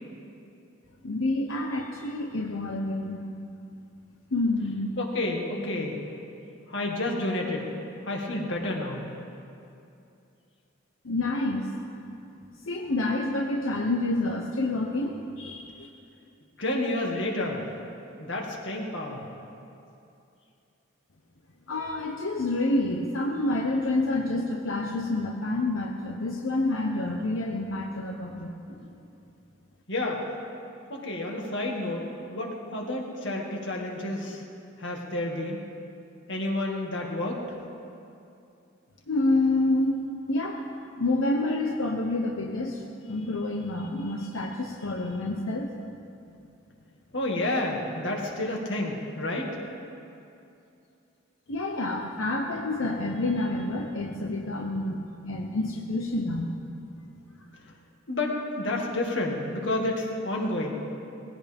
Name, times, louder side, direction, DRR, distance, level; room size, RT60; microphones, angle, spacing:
voice 1, 1.0-3.2 4.3-4.9 11.0-11.7 12.6-15.9 21.7-28.5 39.1-40.0 40.3-40.6 41.0-45.7 51.5-56.5, left 2 dB, 90° left, 0 dB, 1.0 m, -28 dB
voice 2, 5.0-6.0 6.7-7.7 8.1-9.0 16.6-17.6 18.2-19.2 28.7-28.8 29.9-30.2 30.9-34.4 34.8-35.6 36.3-37.4 47.1-49.6 58.1-60.8, left 1 dB, 65° left, -1 dB, 2.2 m, -30 dB
20.5 x 16.0 x 3.6 m, 2.6 s
head